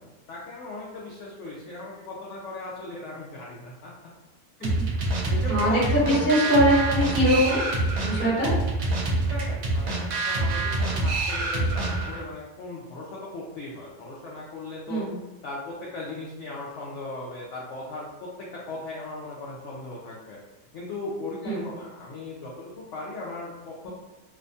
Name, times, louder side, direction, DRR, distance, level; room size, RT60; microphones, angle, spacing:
voice 1, 0.3-3.9 4.8-4.9 5.3-6.2 9.3-15.0 15.4-20.4 20.7-23.9, left 2 dB, 70° left, -4 dB, 0.7 m, -37 dB
sound 1, 4.6-12.3, right 2 dB, 70° right, 1.0 m, -26 dB
voice 2, 5.5-7.6 8.0-8.5 14.9-15.1 21.4-21.7, equal, 10° left, -9 dB, 0.9 m, -22 dB
2.7 x 2.2 x 2.6 m, 1.1 s
omnidirectional pair, 1.7 m